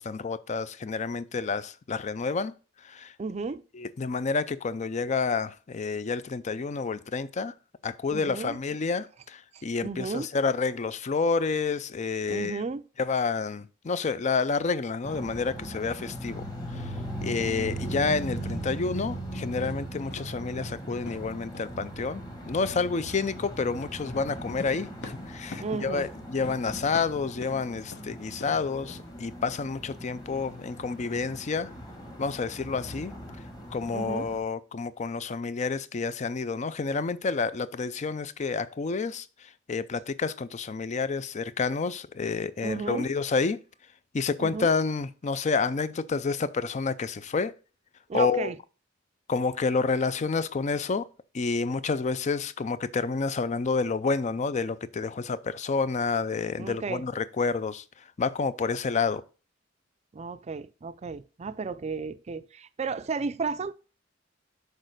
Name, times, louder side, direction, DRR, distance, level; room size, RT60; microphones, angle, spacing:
voice 1, 0.0-2.5 2.8-3.1 3.7-7.5 7.8-12.6 13.0-16.4 17.2-31.7 32.2-33.1 33.7-39.3 39.7-43.6 44.1-47.5 48.1-48.5 49.3-51.1 51.3-57.8 58.2-59.2, left 4 dB, 40° left, 0.4 m, -29 dB
voice 2, 3.2-3.6 8.1-8.6 9.5-10.3 12.3-12.8 17.3-17.4 25.6-26.1 33.9-34.3 42.6-43.1 44.4-44.7 48.1-48.6 56.6-57.0 60.1-63.7, right 4 dB, 35° right, 0.4 m, -33 dB
sound 1, 15.0-34.4, right 1 dB, 20° left, 1.5 m, -39 dB
sound 2, 19.6-19.8 20.1-20.3 20.6-20.8 21.1-21.3 21.5-21.7 24.6-25.7 26.0-26.1 26.4-26.6 26.9-27.6 27.9-28.0 28.4-28.6 28.9-29.0, left 3 dB, 60° left, 0.9 m, -42 dB
6.5 x 4.0 x 6.5 m
head